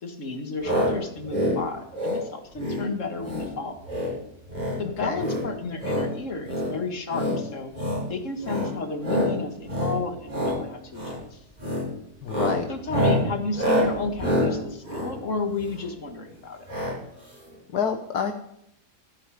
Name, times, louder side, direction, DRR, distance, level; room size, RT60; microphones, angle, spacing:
voice 1, 0.0-3.8 4.8-11.4 12.7-16.7, left 3 dB, 50° left, 6 dB, 2.3 m, -32 dB
sound 1, 0.6-0.9 1.2-1.6 1.9-2.2 2.6-2.8 3.2-3.5 3.8-4.1 4.4-4.8 5.2-6.1 6.4-6.7 7.1-7.4 7.7-8.0 8.4-8.7 9.0-9.3 9.6-10.0 10.2-10.6 10.9-11.2 11.6-11.9 12.2-15.9 16.7-16.9 17.2-17.3 17.5-17.6, left 1 dB, 25° right, 7.4 m, -26 dB
voice 2, 12.2-12.7 17.7-18.3, left 7 dB, 80° left, 6 dB, 1.6 m, -27 dB
15.0 x 14.0 x 5.0 m, 0.75 s
omnidirectional pair, 1.7 m